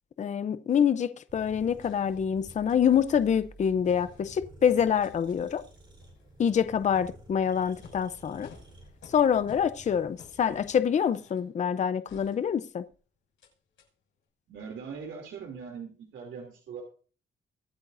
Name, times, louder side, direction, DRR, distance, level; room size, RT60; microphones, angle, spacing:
voice 1, 0.2-5.6 6.4-8.5 9.1-12.8, left 8 dB, 40° left, 0.6 m, -26 dB
sound 1, 1.3-10.8, right 1 dB, 25° right, 3.6 m, -52 dB
sound 2, 1.8-3.4 3.6-4.6 5.0-11.5 12.1-12.9 13.4-13.5 13.8-13.9, left 5 dB, 90° left, 6.5 m, -55 dB
voice 2, 14.5-16.8, right 6 dB, 90° right, 2.9 m, -41 dB
23.0 x 8.9 x 2.6 m
wide cardioid pair, 165°, 19 cm